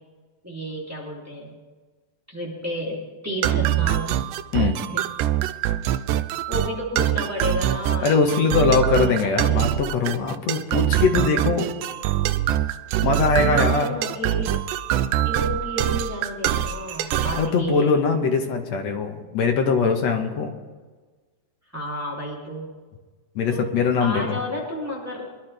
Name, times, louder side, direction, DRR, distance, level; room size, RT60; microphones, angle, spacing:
voice 1, 0.4-1.5 2.3-4.3 4.6-5.0 6.5-8.2 8.7-9.7 13.0-14.5 15.2-17.9 21.7-22.7 23.5-23.7 24.0-25.4, equal, 5° right, -4 dB, 2.6 m, -32 dB
sound 1, 3.4-17.5, right 12 dB, 85° right, 2.1 m, -24 dB
voice 2, 8.0-11.7 13.0-13.9 17.2-20.5 23.4-24.4, left 5 dB, 60° left, 4 dB, 2.2 m, -22 dB
24.0 x 11.5 x 3.4 m, 1.4 s
omnidirectional pair, 3.8 m